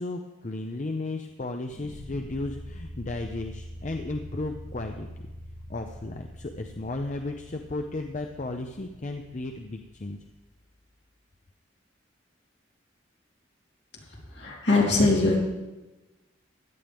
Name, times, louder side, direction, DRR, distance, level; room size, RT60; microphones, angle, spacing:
voice 1, 0.0-5.1 5.7-10.2, left 2 dB, 40° left, 5 dB, 0.6 m, -34 dB
sound 1, 1.6-10.7, equal, 5° left, 4.1 m, -44 dB
voice 2, 14.1-15.4, left 2 dB, 60° left, -3 dB, 3.2 m, -22 dB
16.0 x 11.0 x 3.5 m, 1.1 s
head